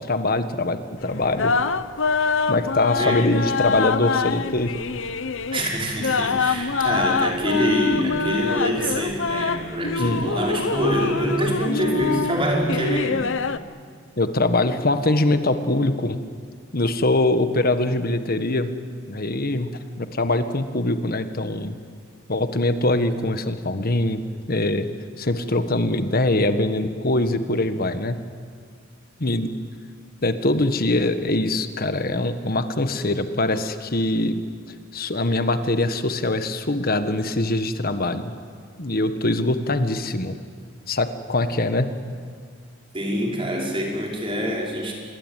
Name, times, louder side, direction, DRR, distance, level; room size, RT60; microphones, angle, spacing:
voice 1, 0.0-1.5 2.5-4.7 10.0-10.3 14.2-16.2 16.7-18.7 19.1-19.7 20.0-21.7 22.3-24.2 24.5-24.9 25.2-28.2 29.2-29.5 30.2-34.4 34.9-38.3 38.8-40.3 40.9-41.9, left 2 dB, 45° left, 9 dB, 1.5 m, -23 dB
sound 1, 1.0-13.6, left 4 dB, 65° left, 0.8 m, -25 dB
voice 2, 5.5-13.2 42.9-44.9, equal, 25° right, -1 dB, 5.2 m, -25 dB
26.5 x 22.0 x 9.2 m, 2.1 s
head